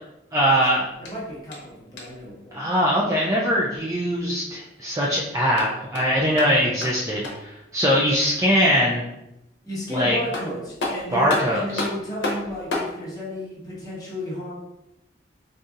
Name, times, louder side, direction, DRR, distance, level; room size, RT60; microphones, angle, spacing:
voice 1, 0.3-0.9 2.5-9.0 9.9-10.2 11.1-11.8, equal, 20° right, -4 dB, 0.3 m, -21 dB
sound 1, 1.0-2.3 5.3-7.6 9.9-10.0 10.3-13.0, left 2 dB, 90° left, 0.8 m, -32 dB
voice 2, 1.0-2.7 9.6-14.5, left 1 dB, 20° left, -6 dB, 1.0 m, -33 dB
3.8 x 2.6 x 2.4 m, 0.89 s
head